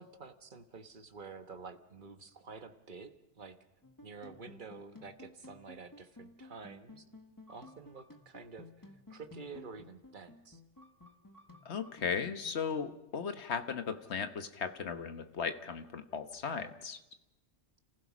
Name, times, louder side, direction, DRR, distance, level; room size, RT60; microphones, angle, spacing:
voice 1, 0.0-3.6 4.0-7.0 7.5-8.7 9.1-10.6, right 4 dB, 45° right, 7 dB, 1.4 m, -49 dB
sound 1, 3.8-12.8, left 2 dB, 15° left, 1.5 m, -55 dB
voice 2, 11.6-17.0, left 6 dB, 65° left, 8 dB, 1.4 m, -37 dB
29.5 x 15.5 x 6.1 m, 0.96 s
omnidirectional pair, 1.2 m